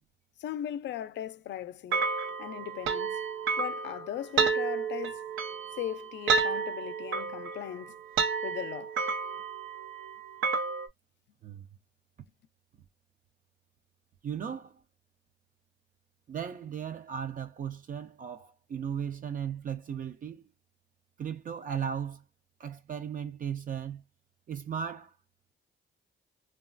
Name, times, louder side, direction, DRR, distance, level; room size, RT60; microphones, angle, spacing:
voice 1, 0.4-2.1 2.4-3.2 3.6-5.3 5.8-8.0 8.4-9.0, left 11 dB, 65° left, 0.4 m, -38 dB
sound 1, 1.9-10.9, right 5 dB, 85° right, 0.7 m, -31 dB
voice 2, 14.2-14.8 16.3-20.4 21.2-22.2 22.6-24.0 24.5-25.1, right 8 dB, 45° right, 0.4 m, -36 dB
2.9 x 2.3 x 2.4 m
cardioid pair, 90°, 20 cm